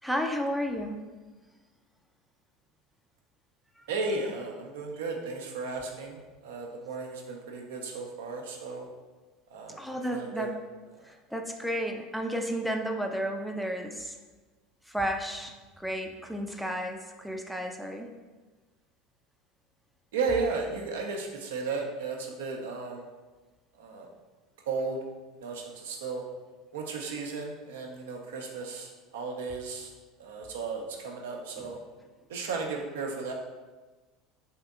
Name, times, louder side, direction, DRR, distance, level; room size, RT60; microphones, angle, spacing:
voice 1, 0.0-1.0 3.8-3.9 9.8-10.6 11.0-14.1 14.9-18.1 31.6-31.7, equal, ahead, 2 dB, 0.3 m, -32 dB
voice 2, 3.9-6.2 6.4-8.9 9.5-10.5 11.0-11.1 20.1-23.0 23.8-24.1 24.7-25.0 25.4-26.2 26.7-29.9 30.2-31.8 32.3-33.3, right 4 dB, 70° right, 1 dB, 0.4 m, -34 dB
3.5 x 2.7 x 2.3 m, 1.3 s
hypercardioid pair, 75°, 0 cm